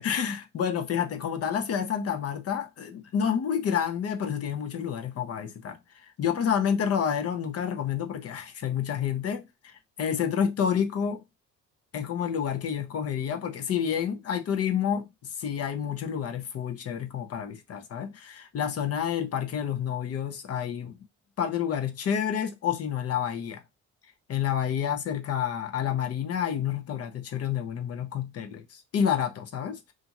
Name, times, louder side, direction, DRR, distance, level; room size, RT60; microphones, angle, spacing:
voice 1, 0.0-5.8 6.2-9.7 10.0-11.2 11.9-15.1 15.4-21.0 21.4-23.6 24.3-29.8, left 8 dB, 55° left, 0.6 m, -29 dB
2.7 x 2.5 x 2.8 m
cardioid pair, 90°, 30 cm